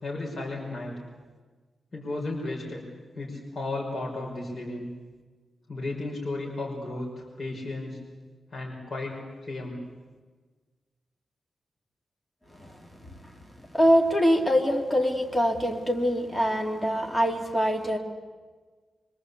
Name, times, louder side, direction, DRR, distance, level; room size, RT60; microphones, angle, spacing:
voice 1, 0.0-0.9 1.9-2.9 3.1-4.9 5.7-8.0 8.5-9.8, left 2 dB, 40° left, -2 dB, 5.6 m, -34 dB
voice 2, 13.7-18.0, equal, 10° left, 1 dB, 3.0 m, -24 dB
25.5 x 25.5 x 8.5 m, 1.4 s
wide cardioid pair, 140°, 0 cm